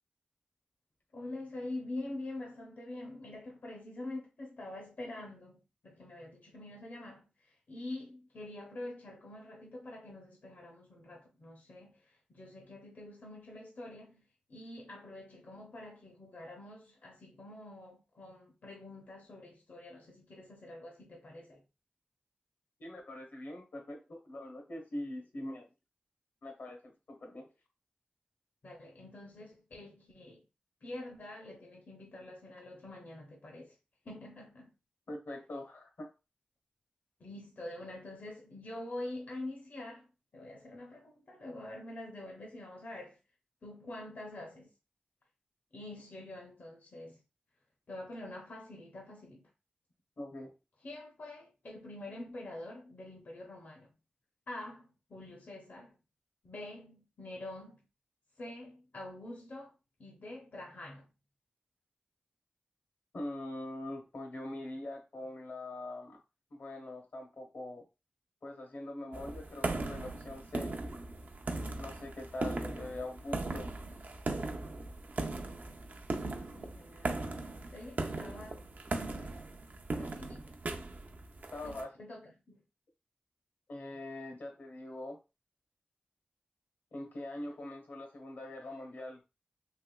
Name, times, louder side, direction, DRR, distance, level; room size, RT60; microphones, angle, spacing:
voice 1, 1.1-14.2 14.5-21.6 28.6-30.4 30.8-33.7 34.0-34.7 37.2-40.1 40.3-43.2 43.6-44.7 45.7-47.2 47.9-49.5 50.8-53.9 54.5-56.0 56.4-57.8 58.4-59.7 60.0-61.1 75.2-78.6 79.2-79.4 80.0-80.5 81.6-82.6, left 1 dB, 65° left, 0.6 m, -46 dB
voice 2, 22.8-25.7 26.4-27.5 35.1-36.1 50.2-50.5 63.1-66.2 66.5-67.9 68.4-70.7 71.8-73.7 81.5-81.9 83.7-85.2 86.9-89.2, left 1 dB, 85° left, 0.9 m, -43 dB
sound 1, 69.1-81.8, right 2 dB, 60° right, 0.5 m, -38 dB
3.3 x 2.8 x 2.2 m
wide cardioid pair, 60°, 3 cm